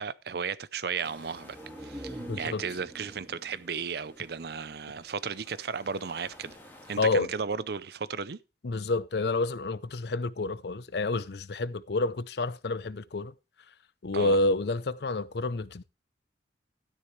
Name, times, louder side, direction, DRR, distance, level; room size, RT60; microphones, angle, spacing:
voice 1, 0.0-1.6 1.8-6.6 6.9-8.4 14.1-14.4, right 6 dB, 60° right, 0.6 m, -34 dB
sound 1, 1.0-7.0, left 1 dB, 10° left, 3.4 m, -54 dB
sound 2, 1.3-5.0 5.4-5.5, right 1 dB, 10° right, 1.9 m, -45 dB
voice 2, 2.2-2.6 7.0-7.3 8.6-13.3 14.0-15.8, left 3 dB, 65° left, 0.6 m, -29 dB
12.5 x 10.0 x 3.2 m
head